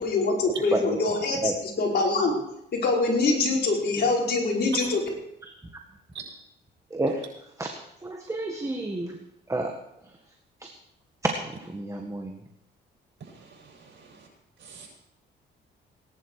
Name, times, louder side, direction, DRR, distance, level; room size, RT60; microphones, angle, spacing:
voice 1, 0.0-2.3 2.7-4.8, left 3 dB, 55° left, 5.2 m, -24 dB
voice 2, 6.9-7.2 8.0-9.2 9.5-9.7 11.7-12.4, right 2 dB, 15° right, 1.8 m, -29 dB
voice 3, 13.2-14.3 14.6-14.9, right 7 dB, 65° right, 7.4 m, -42 dB
19.0 x 11.0 x 4.8 m
cardioid pair, 90°, 20 cm